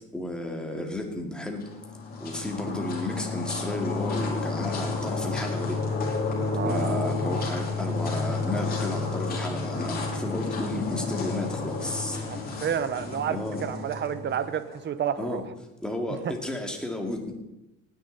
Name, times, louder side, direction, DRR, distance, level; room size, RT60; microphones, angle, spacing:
voice 1, 0.1-1.6 2.2-5.8 6.6-12.2 13.3-13.7 15.2-15.4 15.8-17.3, left 1 dB, 5° left, 1 dB, 2.4 m, -32 dB
sound 1, 1.5-14.8, left 3 dB, 30° left, 4.0 m, -31 dB
voice 2, 6.5-7.2 12.3-15.4, right 8 dB, 35° right, 13 dB, 1.0 m, -30 dB
18.5 x 10.5 x 4.1 m, 0.95 s
cardioid pair, 125°, 31 cm